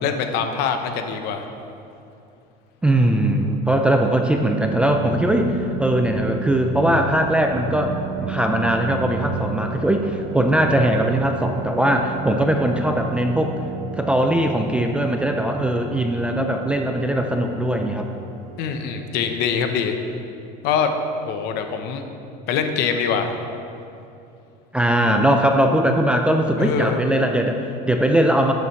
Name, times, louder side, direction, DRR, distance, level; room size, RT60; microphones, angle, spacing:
voice 1, 0.0-1.4 18.6-19.9 20.6-20.9 21.2-22.0 22.5-23.3 26.6-27.0, left 7 dB, 60° left, 6 dB, 0.9 m, -23 dB
voice 2, 2.8-13.5 13.9-18.1 24.7-28.5, right 1 dB, 5° right, 3 dB, 0.3 m, -20 dB
sound 1, 3.1-19.9, right 5 dB, 85° right, 0.8 m, -34 dB
11.5 x 8.2 x 3.2 m, 2.7 s
cardioid pair, 150°, 19 cm